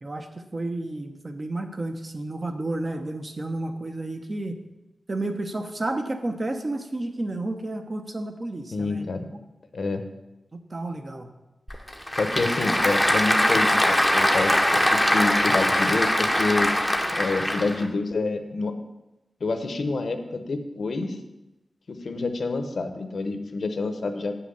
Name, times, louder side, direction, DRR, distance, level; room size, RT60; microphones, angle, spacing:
voice 1, 0.0-4.6 5.1-9.0 10.7-11.3, right 2 dB, 35° right, 6 dB, 1.0 m, -31 dB
voice 2, 8.7-9.3 9.7-10.0 12.1-16.7 17.1-18.7 19.4-21.2 21.9-24.3, left 3 dB, 60° left, 7 dB, 1.0 m, -27 dB
Applause / Crowd, 11.7-17.9, left 1 dB, 5° left, 0.9 m, -22 dB
9.1 x 5.8 x 6.9 m, 0.98 s
wide cardioid pair, 135°, 0 cm